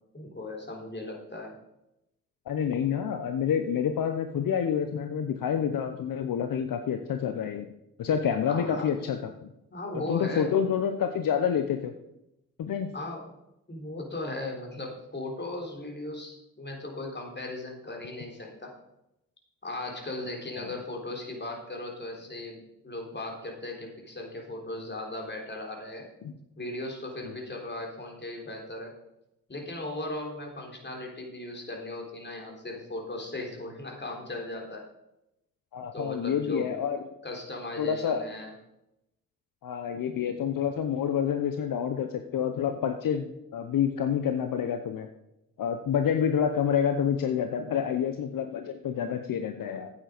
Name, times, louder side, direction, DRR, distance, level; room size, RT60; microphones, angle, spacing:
voice 1, 0.1-1.5 8.5-8.9 9.7-10.5 12.9-13.2 13.7-18.8 19.6-22.6 22.8-26.1 26.6-28.9 29.5-34.9 35.9-36.7 37.2-38.5, left 2 dB, 30° left, 1 dB, 3.7 m, -37 dB
voice 2, 2.5-7.7 8.0-9.5 10.1-11.9 12.6-12.9 20.6-20.7 27.3-27.4 35.7-37.0 37.8-38.2 39.6-45.1 45.6-49.9, left 8 dB, 70° left, 7 dB, 0.9 m, -28 dB
9.2 x 8.7 x 5.1 m, 0.87 s
supercardioid pair, 55°, 34 cm